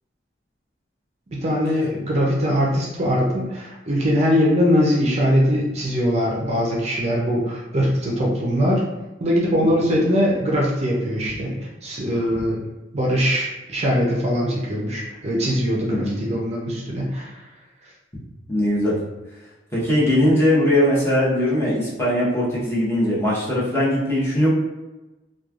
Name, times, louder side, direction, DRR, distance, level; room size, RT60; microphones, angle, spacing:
voice 1, 1.3-8.8 9.2-12.6 12.9-17.4, equal, 40° right, -3 dB, 0.5 m, -21 dB
voice 2, 18.5-18.9 19.7-24.5, left 1 dB, 15° left, -8 dB, 0.9 m, -20 dB
3.1 x 2.3 x 2.4 m, 1.1 s
head